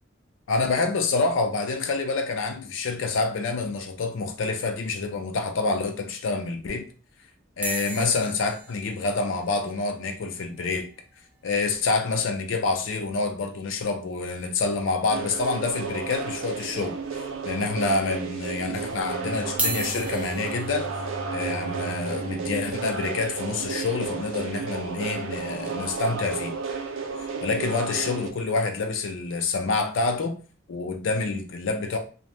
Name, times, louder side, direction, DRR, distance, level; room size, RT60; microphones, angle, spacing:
voice 1, 0.5-6.9 7.6-10.9 11.4-20.9 21.3-26.6 27.2-30.4 30.7-32.0, left 3 dB, 70° left, 0.4 m, -27 dB
sound 1, 7.6-12.0 12.3-12.4 12.5-12.7 13.1-13.2 14.6-14.7 15.4-15.9 16.4-16.5 17.3-17.4 19.4-25.5 26.1-26.3, right 2 dB, 10° right, 0.3 m, -37 dB
sound 2, 15.1-28.3, right 5 dB, 80° right, 0.4 m, -33 dB
Bowed string instrument, 19.1-24.1, right 2 dB, 35° right, 0.7 m, -40 dB
2.7 x 2.0 x 3.2 m
head